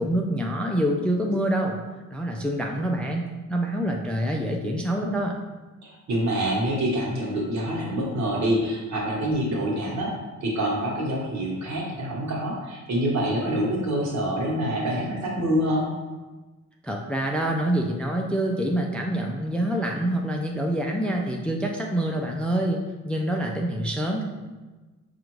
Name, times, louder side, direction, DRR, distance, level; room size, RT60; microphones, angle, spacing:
voice 1, 0.0-1.8 2.1-5.3 16.8-24.2, right 1 dB, 5° left, 1 dB, 0.3 m, -26 dB
voice 2, 5.8-10.1 10.4-15.9, right 1 dB, 65° right, -3 dB, 1.3 m, -26 dB
4.9 x 2.5 x 3.0 m, 1.2 s
cardioid pair, 90°, 30 cm